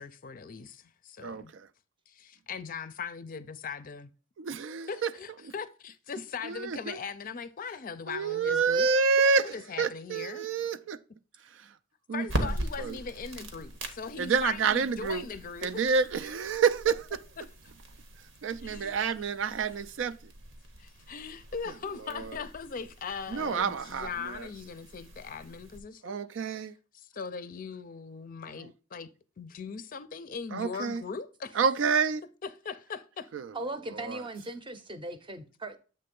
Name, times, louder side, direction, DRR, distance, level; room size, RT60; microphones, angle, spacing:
voice 1, 0.0-1.5 2.1-4.1 4.5-4.6 4.9-8.9 9.2-10.5 12.1-16.1 17.4-17.5 18.6-18.9 20.8-26.2 26.9-29.1 29.4-31.6 32.4-33.3, left 5 dB, 45° left, 0.5 m, -40 dB
voice 2, 1.2-1.6 4.4-5.1 5.4-5.5 6.4-7.0 8.1-9.5 9.8-11.0 12.1-12.5 12.8-13.0 14.2-15.3 15.6-17.0 18.4-20.2 22.1-22.4 23.3-24.5 26.0-26.7 28.6-28.7 30.5-31.0 31.6-32.2 33.3-33.5 33.9-34.2, right 5 dB, 70° right, 0.4 m, -28 dB
sound 1, 12.2-25.8, right 1 dB, 85° right, 1.2 m, -41 dB
voice 3, 33.5-35.8, right 2 dB, 25° right, 0.7 m, -38 dB
7.7 x 3.3 x 5.2 m
head